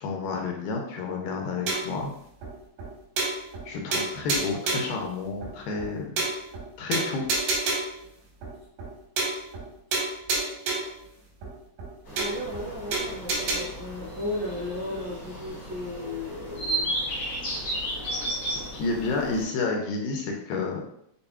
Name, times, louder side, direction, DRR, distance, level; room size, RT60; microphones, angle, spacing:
voice 1, 0.0-2.1 3.7-6.3 6.8-7.3 18.5-20.8, left 4 dB, 80° left, 1 dB, 2.3 m, -30 dB
sound 1, 1.7-2.0 2.4-2.5 2.8-2.9 3.2-3.7 3.9-5.0 5.4-5.5 5.8-5.9 6.2-6.6 6.9-8.0 8.4-8.5 8.8-8.9 9.2-9.7 9.9-11.0 11.4-11.5 11.8-11.9 12.2-12.6 12.9-13.6, right 3 dB, 90° right, 3.0 m, -28 dB
sound 2, 12.0-19.4, right 1 dB, 65° left, 1.1 m, -34 dB
voice 2, 12.1-16.9, left 2 dB, 60° right, -12 dB, 1.6 m, -35 dB
6.7 x 2.3 x 2.3 m, 0.73 s
omnidirectional pair, 4.2 m